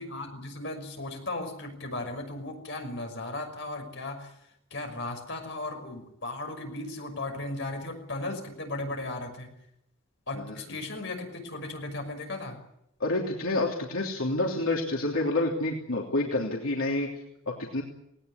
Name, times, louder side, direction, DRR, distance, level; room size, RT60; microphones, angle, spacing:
voice 1, 0.0-9.6 10.3-12.6, left 2 dB, 60° left, 4 dB, 6.0 m, -36 dB
voice 2, 13.0-17.1 17.5-17.8, left 2 dB, 80° left, -1 dB, 3.1 m, -28 dB
19.0 x 18.5 x 9.8 m, 0.78 s
head